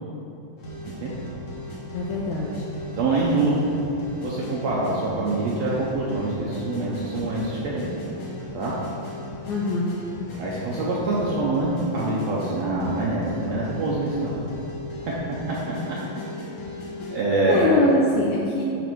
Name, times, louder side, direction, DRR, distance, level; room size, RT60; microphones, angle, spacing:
sound 1, 0.6-17.2, left 1 dB, 55° left, 1.4 m, -37 dB
voice 1, 1.9-2.7 3.5-3.8 9.5-9.9 17.5-18.6, left 2 dB, 80° left, -4 dB, 1.8 m, -23 dB
voice 2, 3.0-3.5 4.2-7.8 8.5-8.7 10.4-14.4 17.1-17.7, right 2 dB, 85° right, -6 dB, 1.5 m, -25 dB
8.9 x 3.4 x 6.1 m, 2.8 s
omnidirectional pair, 4.1 m